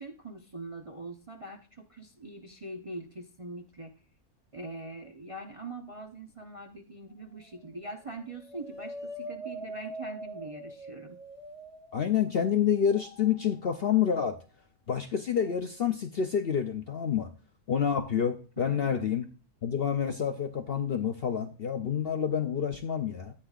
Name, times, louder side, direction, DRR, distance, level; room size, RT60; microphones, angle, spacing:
voice 1, 0.0-3.9 4.5-11.2 18.6-19.1, right 2 dB, 30° right, 2 dB, 0.7 m, -43 dB
sound 1, 7.1-7.7 8.1-12.2 12.7-14.1 15.4-15.5, right 1 dB, 20° left, 1.5 m, -43 dB
voice 2, 11.9-14.4 14.9-17.3 17.7-19.2 19.6-23.3, left 8 dB, 55° left, 6 dB, 0.7 m, -28 dB
13.5 x 8.7 x 2.4 m, 0.36 s
omnidirectional pair, 1.6 m